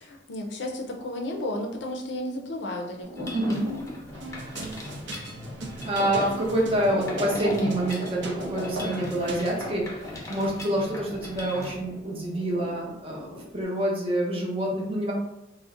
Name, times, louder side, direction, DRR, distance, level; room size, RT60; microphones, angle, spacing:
voice 1, 0.0-3.4, left 1 dB, 75° left, 2 dB, 0.5 m, -33 dB
sound 1, 3.0-6.3 6.8-13.6, left 1 dB, 60° right, 1.1 m, -38 dB
Mechanisms, 3.2-11.8, left 1 dB, 15° left, 0.6 m, -40 dB
voice 2, 3.3-3.6 5.8-9.8 10.1-13.3 13.5-15.1, right 1 dB, 30° right, -3 dB, 0.7 m, -27 dB
sound 2, 4.1-9.8, right 2 dB, 75° right, 0.5 m, -40 dB
2.5 x 2.1 x 3.6 m, 0.92 s
head